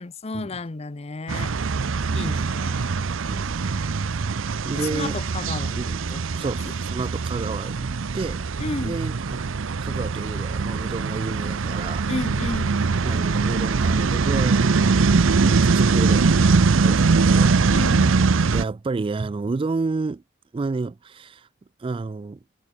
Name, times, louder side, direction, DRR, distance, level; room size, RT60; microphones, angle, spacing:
voice 1, 0.0-1.5 2.1-2.9 4.7-5.8 6.1-6.5 8.6-9.0 12.1-12.9 17.7-18.2, left 3 dB, 30° left, 0.7 m, -33 dB
sound 1, 1.3-18.6, right 4 dB, 90° right, 0.6 m, -22 dB
voice 2, 3.2-3.7 4.6-5.2 5.8-6.1 6.4-8.4 8.8-9.4 9.8-12.1 13.0-15.1 15.4-16.5 16.8-17.9 18.5-20.2 20.5-21.5 21.8-22.4, right 3 dB, 25° right, 0.3 m, -30 dB
head